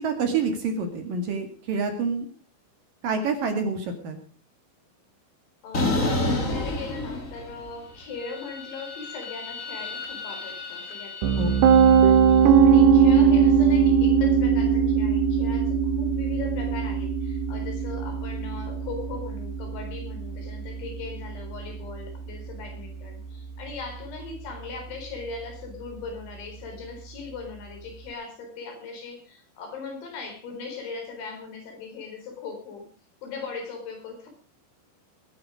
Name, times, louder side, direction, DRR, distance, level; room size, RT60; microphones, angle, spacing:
voice 1, 0.0-2.3 3.0-4.2 11.4-11.5, right 4 dB, 55° right, 6 dB, 3.3 m, -27 dB
voice 2, 5.6-32.9 33.2-34.3, left 4 dB, 75° left, 3 dB, 6.7 m, -39 dB
sound 1, 5.7-7.7 8.0-12.3, left 2 dB, 25° left, 1.8 m, -31 dB
Piano, 11.2-23.1, right 7 dB, 70° right, 3.0 m, -21 dB
21.0 x 10.5 x 5.0 m, 0.37 s
omnidirectional pair, 5.4 m